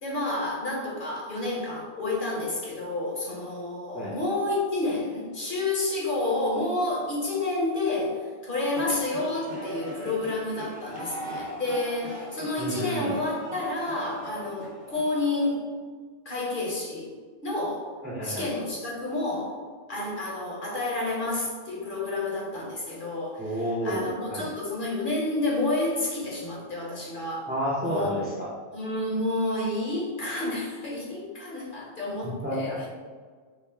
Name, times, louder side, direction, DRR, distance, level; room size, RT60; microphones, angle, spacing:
voice 1, 0.0-15.7 16.2-17.1 17.4-17.9 18.2-19.6 19.9-23.5 23.8-27.5 27.8-28.3 28.7-32.9, left 2 dB, 50° left, -4 dB, 1.0 m, -30 dB
sound 1, 8.7-15.3, right 1 dB, 50° right, 1.1 m, -40 dB
voice 2, 12.6-13.2 18.0-18.5 23.4-24.5 27.5-28.5 32.2-32.8, equal, 10° right, -5 dB, 0.5 m, -30 dB
4.9 x 2.0 x 3.3 m, 1.6 s
omnidirectional pair, 1.2 m